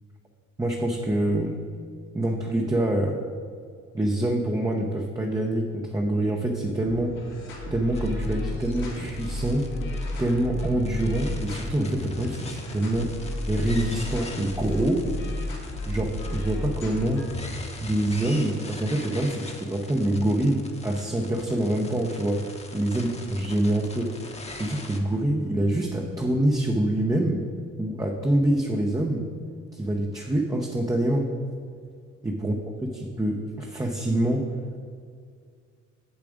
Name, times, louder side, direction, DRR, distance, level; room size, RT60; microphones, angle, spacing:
voice 1, 0.6-1.6 2.1-3.2 3.9-7.2 7.7-9.7 10.2-13.1 13.5-15.0 15.9-17.3 17.8-24.2 24.6-27.4 27.8-29.3 29.7-31.3 32.2-32.5 33.0-34.5, right 1 dB, 10° right, 0 dB, 0.8 m, -25 dB
sound 1, 6.8-17.7, left 1 dB, 80° left, 2.2 m, -33 dB
sound 2, 8.0-25.0, left 2 dB, 20° left, 1.1 m, -43 dB
7.4 x 7.1 x 5.1 m, 2.1 s
cardioid pair, 90°, 30 cm